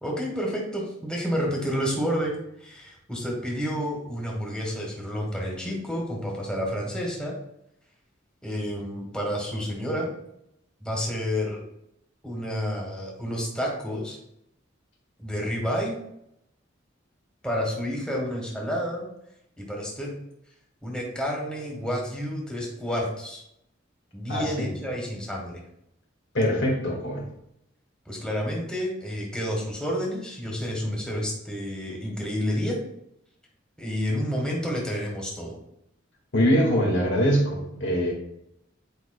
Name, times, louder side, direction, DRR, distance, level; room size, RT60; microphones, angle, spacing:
voice 1, 0.0-7.4 8.4-10.1 10.8-11.6 12.2-14.2 15.2-16.0 17.4-19.1 19.6-20.1 20.8-23.4 24.1-25.6 28.1-32.8 33.8-35.5, equal, 5° left, -2 dB, 1.4 m, -30 dB
voice 2, 24.3-24.7 26.3-27.3 36.3-38.1, equal, 70° left, -1 dB, 1.9 m, -23 dB
9.3 x 4.8 x 2.3 m, 0.79 s
head